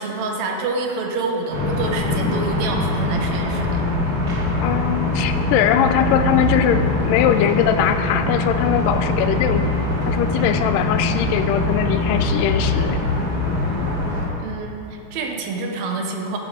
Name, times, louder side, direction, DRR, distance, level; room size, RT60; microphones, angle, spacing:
voice 1, 0.0-3.9 14.4-16.4, right 3 dB, 65° right, 2 dB, 2.1 m, -27 dB
sound 1, 1.5-14.3, left 2 dB, 30° right, 2.4 m, -22 dB
voice 2, 4.6-9.8 10.1-13.0, left 10 dB, 85° left, 9 dB, 2.2 m, -21 dB
10.5 x 10.5 x 5.1 m, 2.7 s
omnidirectional pair, 3.9 m